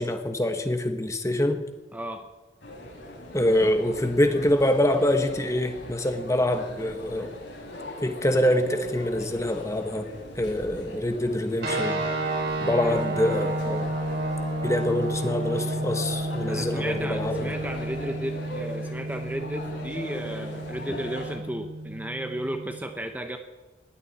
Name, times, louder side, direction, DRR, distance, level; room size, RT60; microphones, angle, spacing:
voice 1, 0.0-1.6 3.3-7.3 8.0-10.1 10.4-12.0 12.6-13.9 14.6-17.5 20.9-21.0, left 1 dB, 15° left, 7 dB, 1.3 m, -25 dB
voice 2, 1.9-2.2 12.8-13.0 14.9-15.0 16.5-23.4, right 1 dB, 10° right, 5 dB, 1.0 m, -34 dB
sound 1, 2.6-21.4, left 1 dB, 80° left, 6.8 m, -40 dB
sound 2, 11.6-22.8, right 1 dB, 60° right, 4.9 m, -31 dB
21.0 x 16.0 x 4.3 m, 1.2 s
head